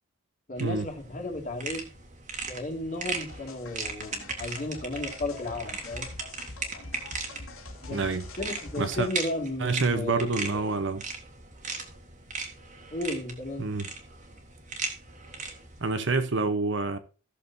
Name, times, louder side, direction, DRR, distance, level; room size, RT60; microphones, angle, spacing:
voice 1, 0.5-1.9 2.5-6.1 7.8-8.0 8.4-10.7 12.9-13.7, left 2 dB, 35° left, 2.4 m, -34 dB
sound 1, 0.6-15.9, right 4 dB, 35° right, 1.9 m, -38 dB
sound 2, 3.3-9.1, left 3 dB, 85° left, 2.3 m, -44 dB
voice 2, 7.9-8.3 8.8-9.1 9.6-11.0 13.6-13.9 15.8-17.0, right 3 dB, 60° right, 0.9 m, -27 dB
16.5 x 6.7 x 2.7 m
head